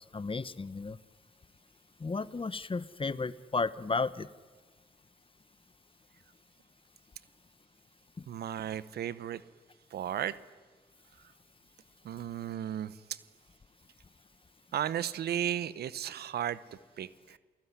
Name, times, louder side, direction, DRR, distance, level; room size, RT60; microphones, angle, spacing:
voice 1, 0.1-1.0 2.0-4.3 8.2-8.3, left 4 dB, 35° left, 17 dB, 1.1 m, -33 dB
voice 2, 8.3-9.4 9.9-10.3 12.0-13.2 14.7-16.6 17.0-17.4, right 10 dB, 80° right, 17 dB, 1.0 m, -34 dB
29.0 x 19.0 x 9.9 m, 1.4 s
supercardioid pair, 55°, 16 cm